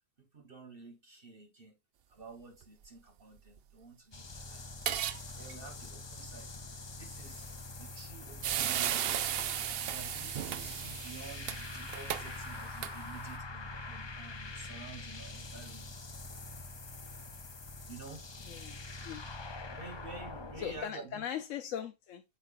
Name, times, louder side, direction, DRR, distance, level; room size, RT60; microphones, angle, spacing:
voice 1, 0.2-1.8 2.1-4.6 5.3-7.5 7.8-9.4 9.9-15.9 17.9-18.2 19.7-21.2, right 3 dB, 45° right, 1.2 m, -50 dB
sound 1, 4.1-20.8, left 2 dB, 45° left, 0.3 m, -45 dB
sound 2, 4.7-5.2 5.5-5.6 7.9-8.1 8.4-13.3, right 10 dB, 65° right, 0.6 m, -35 dB
voice 2, 18.4-18.8 19.0-19.2 20.6-22.2, left 9 dB, 65° left, 1.0 m, -39 dB
8.2 x 5.8 x 2.5 m
omnidirectional pair, 1.5 m